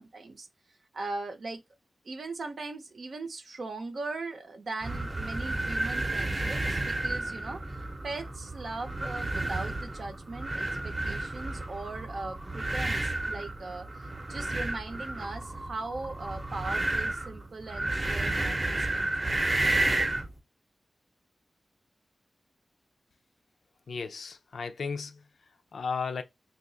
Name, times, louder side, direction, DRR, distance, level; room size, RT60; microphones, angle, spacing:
voice 1, 0.0-1.6 2.0-19.7, right 3 dB, 65° right, 0.6 m, -40 dB
sound 1, 4.8-20.3, right 2 dB, 30° right, 0.7 m, -31 dB
voice 2, 23.9-25.2 25.7-26.2, left 5 dB, 85° left, 0.5 m, -34 dB
2.8 x 2.4 x 3.9 m
wide cardioid pair, 90°, 0 cm